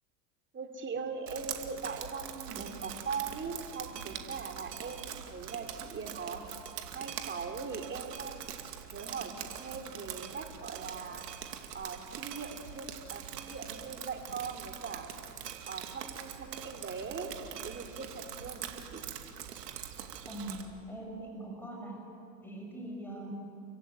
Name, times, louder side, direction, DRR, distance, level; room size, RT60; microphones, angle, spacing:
voice 1, 0.5-6.4 6.9-8.5 8.9-11.3 11.7-15.1 15.7-19.0, right 5 dB, 25° right, 5 dB, 3.2 m, -40 dB
Drip, 1.3-20.6, right 9 dB, 80° right, 2.5 m, -43 dB
voice 2, 20.3-22.0 22.4-23.3, right 1 dB, 5° left, -1 dB, 6.5 m, -42 dB
29.5 x 15.5 x 9.4 m, 2.5 s
hypercardioid pair, 100°, 47 cm